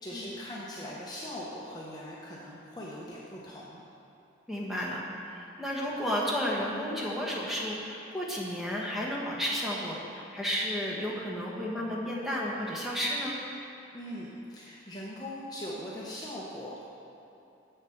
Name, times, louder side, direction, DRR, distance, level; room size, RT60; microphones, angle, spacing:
voice 1, 0.0-3.8 13.9-16.8, equal, 20° left, -5 dB, 0.8 m, -40 dB
voice 2, 4.5-13.4, equal, ahead, -5 dB, 1.1 m, -32 dB
7.5 x 6.7 x 5.8 m, 2.9 s
head